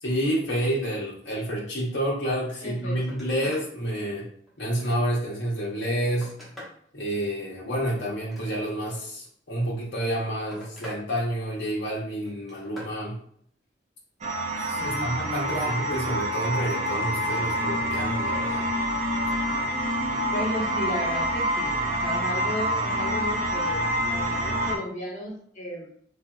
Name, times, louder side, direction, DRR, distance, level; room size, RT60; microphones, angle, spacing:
voice 1, 0.0-4.3 4.6-6.3 6.9-13.2 14.6-18.7, right 1 dB, 75° left, -5 dB, 0.8 m, -29 dB
voice 2, 2.6-3.2 14.8-15.8 20.3-25.9, left 1 dB, 40° left, -3 dB, 0.9 m, -34 dB
Telephone, 3.0-3.7 4.2-5.3 5.8-6.8 8.1-8.9 9.9-11.0 11.4-11.8 12.3-13.0 15.4-15.8 17.2-17.3, left 1 dB, ahead, 0.8 m, -46 dB
sound 1, 14.2-24.8, equal, 35° right, 0.3 m, -27 dB
3.3 x 2.6 x 2.2 m, 0.63 s
head